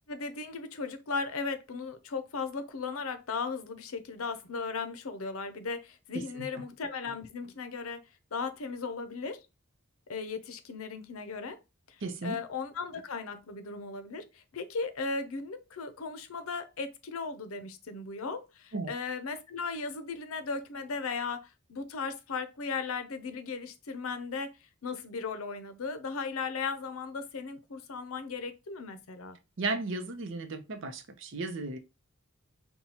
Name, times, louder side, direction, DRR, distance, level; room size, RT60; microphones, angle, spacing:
voice 1, 0.1-8.0 8.3-9.5 10.1-11.6 11.9-24.5 24.8-29.4, left 4 dB, 85° left, 0.6 m, -37 dB
voice 2, 12.0-12.4 18.7-18.9 29.6-31.8, right 3 dB, 60° right, 0.6 m, -35 dB
5.4 x 2.3 x 2.9 m
head